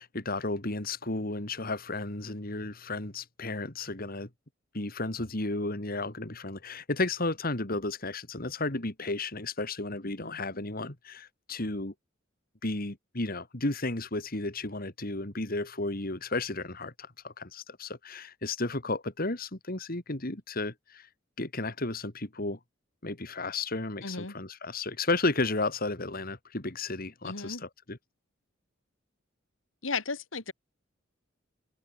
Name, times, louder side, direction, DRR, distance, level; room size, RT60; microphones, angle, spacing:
voice 1, 0.0-4.3 4.7-11.9 12.6-21.1 21.4-22.6 23.0-28.0, left 2 dB, 50° left, 2.6 m, -33 dB
voice 2, 24.0-24.3 27.2-27.6 29.8-30.5, left 4 dB, 90° left, 2.9 m, -35 dB
head